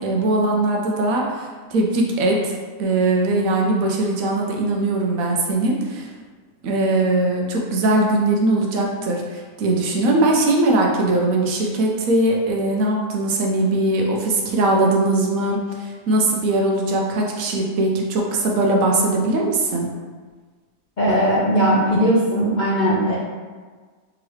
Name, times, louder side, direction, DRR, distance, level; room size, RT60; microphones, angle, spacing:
voice 1, 0.0-2.5 2.8-6.1 6.6-19.9, right 2 dB, 70° right, -1 dB, 1.0 m, -20 dB
voice 2, 21.0-23.1, equal, 55° left, -9 dB, 0.5 m, -18 dB
3.6 x 3.0 x 3.1 m, 1.5 s
omnidirectional pair, 1.6 m